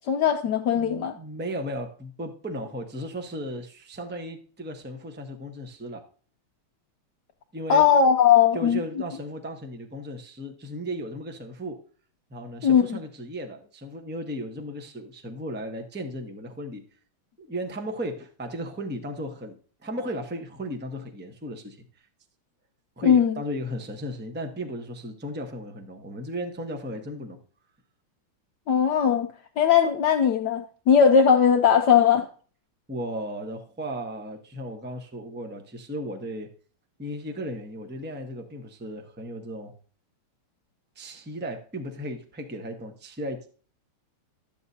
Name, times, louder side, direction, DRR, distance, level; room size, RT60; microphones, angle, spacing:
voice 1, 0.1-1.1 7.7-8.8 12.6-13.0 23.0-23.3 28.7-29.3 29.6-32.3, left 7 dB, 70° left, 1.0 m, -19 dB
voice 2, 0.7-6.0 7.5-7.9 8.5-11.8 12.3-16.8 17.4-21.8 23.0-27.4 32.9-36.5 37.0-39.7 41.0-43.5, equal, 15° right, 0.3 m, -35 dB
12.5 x 8.7 x 2.7 m
omnidirectional pair, 2.4 m